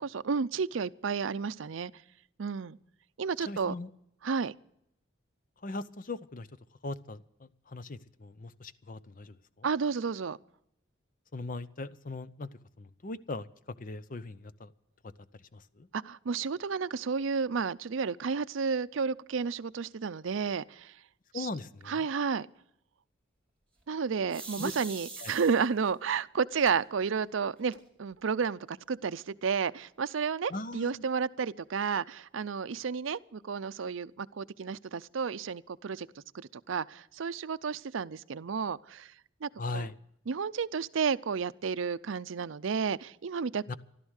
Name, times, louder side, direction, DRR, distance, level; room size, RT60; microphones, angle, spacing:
voice 1, 0.2-1.9 2.4-2.8 3.2-3.7 4.2-4.5 9.6-10.4 15.9-20.9 21.3-21.5 21.9-22.5 23.9-36.1 36.3-39.1 39.4-39.9 40.3-43.7, right 5 dB, 75° right, 0.5 m, -32 dB
voice 2, 3.5-3.9 5.6-6.5 6.8-9.7 11.3-12.5 12.8-13.5 13.8-14.7 15.0-15.1 15.5-15.9 21.3-22.0 24.6-24.7 25.2-25.3 30.5-31.0 39.6-40.0 43.7-43.8, left 2 dB, 40° left, 0.6 m, -39 dB
sound 1, 24.3-25.9 26.7-26.8 27.2-27.3 27.5-28.1, right 3 dB, 5° left, 3.0 m, -43 dB
15.0 x 12.5 x 6.4 m
head